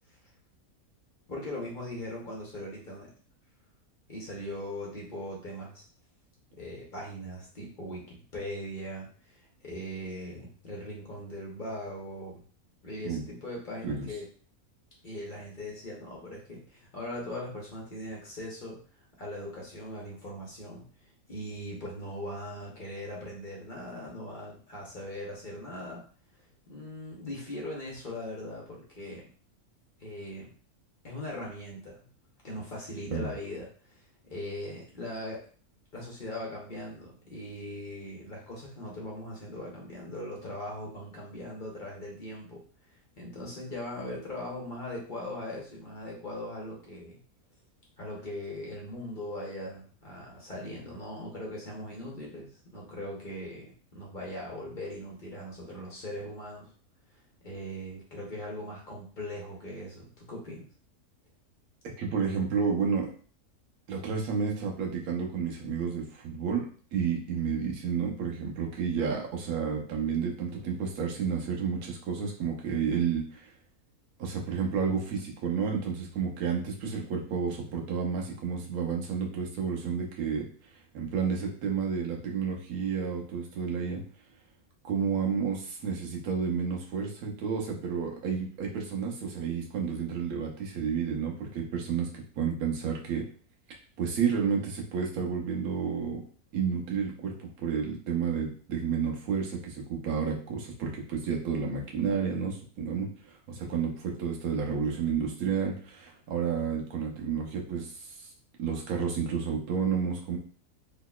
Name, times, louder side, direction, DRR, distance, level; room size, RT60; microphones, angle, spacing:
voice 1, 1.3-3.1 4.1-5.8 6.6-12.4 12.8-14.3 15.0-18.8 19.2-26.0 26.7-29.3 30.0-30.5 31.0-32.1 32.4-35.4 35.9-47.2 48.0-56.7 57.4-60.7, left 1 dB, 40° left, -3 dB, 0.9 m, -40 dB
voice 2, 62.0-63.1 63.9-73.5 74.2-80.5 80.9-84.0 84.8-93.2 94.0-96.2 96.5-103.1 103.5-108.3 108.6-110.4, right 6 dB, 75° right, 0 dB, 1.2 m, -31 dB
3.9 x 3.1 x 2.3 m, 0.43 s
omnidirectional pair, 1.6 m